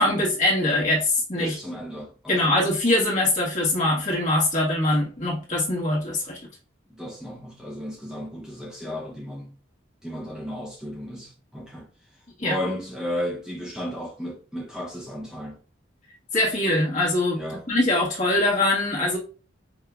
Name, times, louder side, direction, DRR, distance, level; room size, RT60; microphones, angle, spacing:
voice 1, 0.0-1.6 2.3-6.4 12.4-12.6 16.3-19.2, left 1 dB, 40° left, 1.5 m, -23 dB
voice 2, 1.4-2.5 6.9-9.5 10.0-11.9 12.4-15.6 17.4-17.6, equal, 5° right, 0.7 m, -34 dB
4.9 x 2.8 x 2.3 m
head